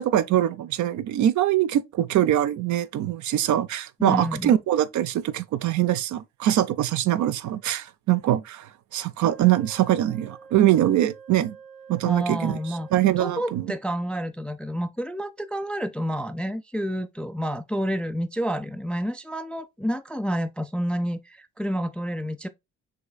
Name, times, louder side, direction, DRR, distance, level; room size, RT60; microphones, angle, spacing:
voice 1, 0.0-11.6 11.9-12.6 12.9-13.7, right 12 dB, 50° right, 0.5 m, -23 dB
voice 2, 4.0-4.5 12.0-12.9 13.2-22.5, equal, 5° left, 0.4 m, -29 dB
Wind instrument woodwind instrument, 9.2-13.8, right 5 dB, 85° right, 1.9 m, -48 dB
5.5 x 3.1 x 2.2 m
hypercardioid pair, 45°, 37 cm